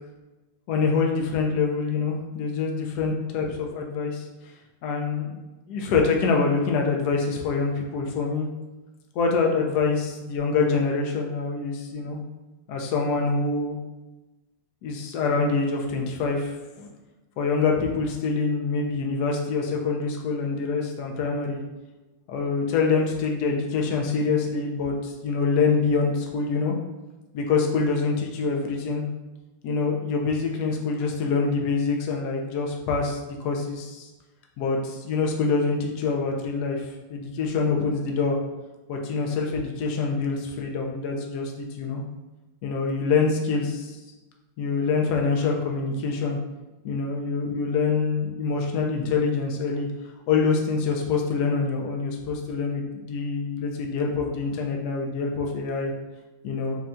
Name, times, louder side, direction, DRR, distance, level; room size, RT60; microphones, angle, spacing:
voice 1, 0.7-4.2 4.8-5.4 5.7-8.5 9.1-12.2 12.7-13.8 14.8-16.9 17.4-21.6 22.3-26.7 27.3-29.0 29.6-34.1 34.6-38.4 38.9-42.0 42.6-44.0 44.6-46.4 46.8-49.9 50.3-55.9 56.4-56.8, left 4 dB, 70° left, 1 dB, 1.1 m, -25 dB
5.4 x 2.2 x 2.6 m, 1.1 s
omnidirectional pair, 1.9 m